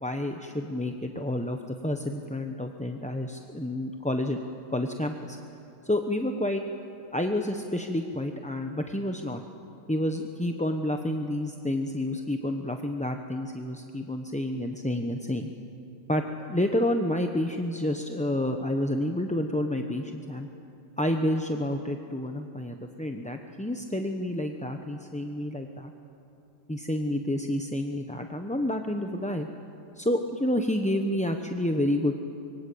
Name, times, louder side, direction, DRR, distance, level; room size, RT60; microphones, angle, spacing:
voice 1, 0.0-4.4 4.7-5.4 5.8-6.6 7.1-9.4 9.9-15.5 16.1-20.5 21.0-25.9 26.7-29.5 30.0-32.1, left 1 dB, 5° left, 4 dB, 0.8 m, -29 dB
26.0 x 23.5 x 8.6 m, 2.8 s
omnidirectional pair, 1.4 m